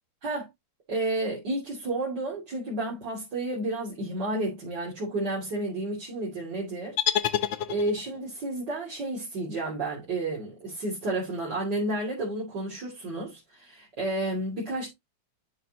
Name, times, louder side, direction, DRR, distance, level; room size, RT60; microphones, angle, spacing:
voice 1, 0.9-7.0 7.7-14.9, right 2 dB, 60° right, 3.3 m, -31 dB
sound 1, 7.0-8.3, left 10 dB, 70° left, 1.4 m, -28 dB
11.5 x 5.0 x 2.9 m
omnidirectional pair, 2.2 m